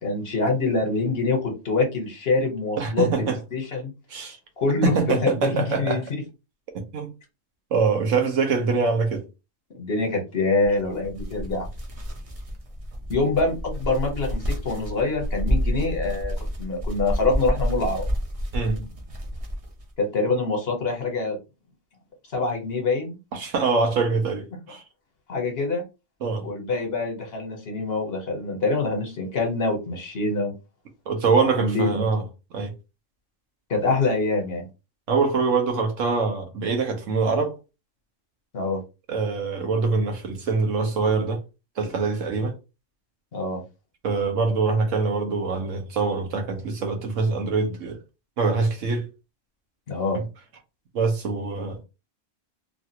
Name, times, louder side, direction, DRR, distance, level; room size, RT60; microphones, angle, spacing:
voice 1, 0.0-3.9 4.6-6.2 9.7-11.7 13.1-18.1 20.0-21.4 22.3-23.2 25.3-25.8 26.4-30.5 31.6-32.0 33.7-34.6 38.5-38.8 43.3-43.6 49.9-50.2, left 3 dB, 55° left, 1.2 m, -25 dB
voice 2, 2.8-3.4 4.1-4.4 4.8-6.0 6.9-7.1 7.7-9.2 18.5-18.9 23.3-24.8 26.2-26.5 31.1-32.2 32.5-32.7 35.1-37.6 39.1-41.4 41.8-42.5 44.0-48.0 48.4-49.1 50.1-50.2 50.9-51.8, right 4 dB, 80° right, 1.2 m, -24 dB
sound 1, 10.6-19.9, equal, 35° right, 0.6 m, -29 dB
3.2 x 2.4 x 2.8 m
omnidirectional pair, 1.3 m